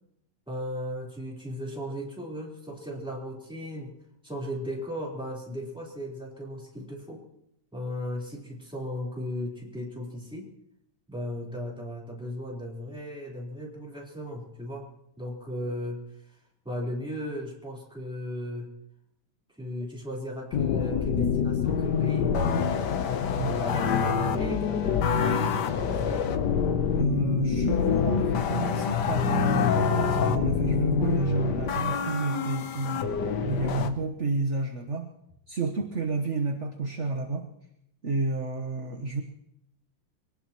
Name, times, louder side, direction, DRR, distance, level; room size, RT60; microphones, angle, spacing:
voice 1, 0.5-3.9 4.2-7.2 7.7-10.5 11.1-14.9 15.2-16.0 16.6-18.7 19.6-22.3 23.5-26.3, equal, ahead, -4 dB, 3.9 m, -36 dB
sound 1, 20.5-33.9, left 7 dB, 60° left, 1.3 m, -26 dB
voice 2, 23.4-23.8 26.9-35.1 35.5-37.5 38.0-39.2, right 3 dB, 45° right, 4 dB, 1.1 m, -30 dB
24.5 x 18.5 x 3.0 m, 0.76 s
omnidirectional pair, 2.4 m